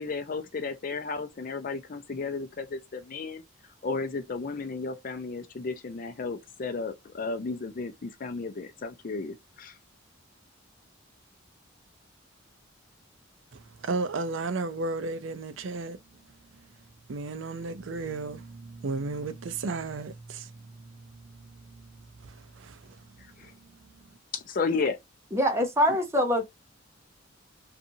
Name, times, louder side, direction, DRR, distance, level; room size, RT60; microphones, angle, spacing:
voice 1, 0.0-3.4 3.8-9.8 23.4-23.5 24.3-25.0, left 4 dB, 45° left, 0.5 m, -33 dB
voice 2, 13.5-16.0 16.6-16.7 17.1-23.9, right 3 dB, 70° right, 0.5 m, -35 dB
voice 3, 25.3-26.5, equal, 15° right, 0.7 m, -24 dB
2.6 x 2.5 x 2.6 m
head